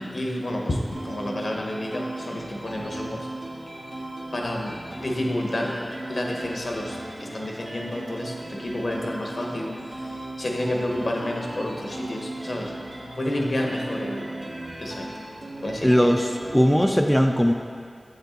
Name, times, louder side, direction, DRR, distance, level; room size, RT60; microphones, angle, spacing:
voice 1, 0.1-3.3 4.3-5.8 6.1-12.7 13.2-14.3 14.8-15.1 15.6-15.9, left 1 dB, 65° left, 0 dB, 1.0 m, -30 dB
sound 1, 0.9-16.9, right 1 dB, 75° right, 1.4 m, -37 dB
voice 2, 15.8-17.5, equal, 5° left, 3 dB, 0.4 m, -19 dB
8.0 x 5.3 x 3.9 m, 2.2 s
wide cardioid pair, 50°, 0 cm